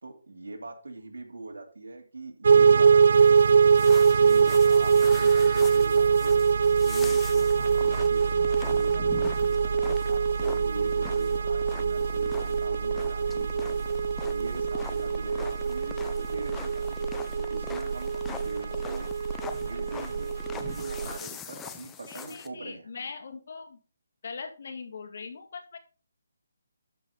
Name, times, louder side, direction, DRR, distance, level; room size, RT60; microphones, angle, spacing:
voice 1, 0.0-3.7 4.2-6.5 6.8-13.8 14.3-19.1 19.6-22.9, right 2 dB, 80° right, 3 dB, 2.6 m, -42 dB
sound 1, 2.4-21.2, right 6 dB, 60° right, 0.3 m, -23 dB
Walking in snow, 3.1-22.5, left 8 dB, 10° left, 0.7 m, -44 dB
voice 2, 22.1-23.8 24.2-25.8, left 5 dB, 55° left, 7 dB, 2.0 m, -41 dB
12.5 x 5.1 x 4.0 m, 0.35 s
figure-of-eight pair, 155°, 0 cm